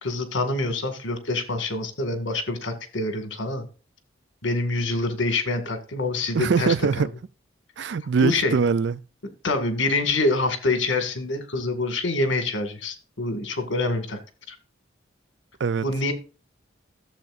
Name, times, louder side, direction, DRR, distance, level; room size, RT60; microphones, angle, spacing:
voice 1, 0.0-3.6 4.4-6.7 8.2-8.6 9.4-14.2 14.5-14.6 15.8-16.1, left 2 dB, 75° left, 1.8 m, -26 dB
voice 2, 6.3-7.1 7.8-9.0 15.6-15.8, right 5 dB, 60° right, 0.4 m, -22 dB
13.5 x 7.5 x 2.5 m
head